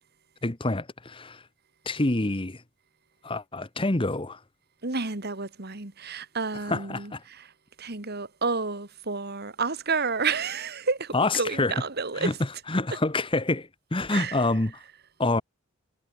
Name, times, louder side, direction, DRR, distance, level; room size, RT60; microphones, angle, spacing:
voice 1, 0.4-1.4 1.8-2.6 3.2-4.4 6.7-7.2 11.1-11.7 12.2-12.3 12.7-14.7 15.2-15.4, left 2 dB, 25° left, 1.2 m, -27 dB
voice 2, 4.8-7.5 7.8-12.4 14.1-14.4, right 4 dB, 50° right, 2.1 m, -30 dB
head